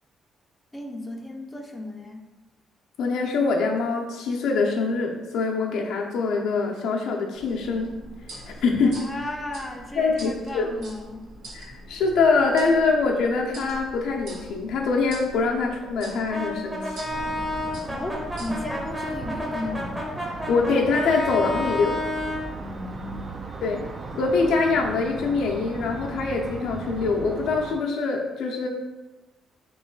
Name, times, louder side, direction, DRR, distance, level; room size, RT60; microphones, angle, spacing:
voice 1, 0.7-2.3 8.8-11.3 17.9-20.1 22.6-23.4, left 1 dB, 20° left, 2 dB, 0.5 m, -35 dB
voice 2, 3.0-7.9 8.3-9.0 10.0-10.7 11.5-17.0 20.5-22.0 23.6-23.9 24.1-28.7, left 4 dB, 80° left, 0 dB, 0.6 m, -24 dB
sound 1, 7.3-19.0, right 1 dB, 80° right, 0.9 m, -44 dB
Brass instrument, 16.3-22.5, left 1 dB, 15° right, 0.9 m, -31 dB
sound 2, 17.1-27.7, right 3 dB, 40° right, 0.5 m, -37 dB
3.1 x 3.1 x 3.7 m, 1.1 s
cardioid pair, 90°, 0 cm